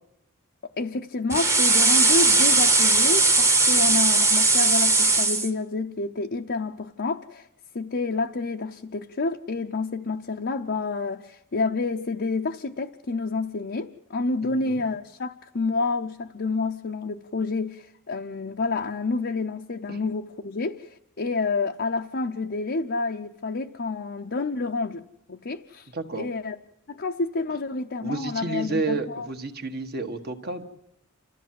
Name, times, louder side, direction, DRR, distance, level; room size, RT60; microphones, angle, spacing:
voice 1, 0.8-7.5 7.7-25.0 25.3-25.9 26.1-26.6 26.9-29.3, left 3 dB, 50° left, 3 dB, 0.7 m, -29 dB
sound 1, 1.3-5.5, right 3 dB, 15° right, 1.2 m, -19 dB
voice 2, 14.4-14.8 19.9-20.0 25.9-26.3 28.0-30.7, right 3 dB, 45° right, 5 dB, 1.7 m, -31 dB
29.0 x 13.5 x 7.7 m, 0.84 s
head